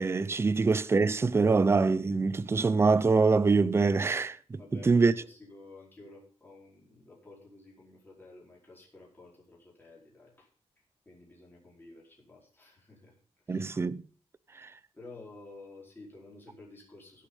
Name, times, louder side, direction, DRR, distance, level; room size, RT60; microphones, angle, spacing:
voice 1, 0.0-4.6 4.9-5.1 13.5-14.0, right 4 dB, 20° right, 0.5 m, -24 dB
voice 2, 4.6-10.5 11.0-13.1 13.5-13.7 14.9-17.3, left 2 dB, 15° left, 4.8 m, -52 dB
16.5 x 6.5 x 5.6 m
wide cardioid pair, 130°, 11 cm